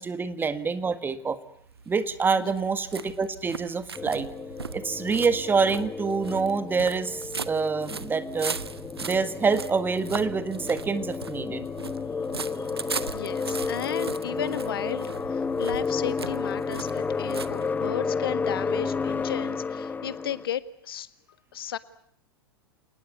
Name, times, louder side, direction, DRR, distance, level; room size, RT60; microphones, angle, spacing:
voice 1, 0.0-1.4 1.9-4.3 4.7-8.6 9.0-11.7, right 4 dB, 15° right, 12 dB, 1.8 m, -26 dB
sound 1, 1.6-18.1, right 5 dB, 85° right, 1.1 m, -39 dB
sound 2, 3.9-20.5, left 5 dB, 15° left, 1.1 m, -32 dB
voice 2, 13.1-21.1 21.5-21.8, left 10 dB, 65° left, 15 dB, 1.5 m, -34 dB
29.0 x 19.5 x 9.5 m, 0.72 s
figure-of-eight pair, 90°, 13 cm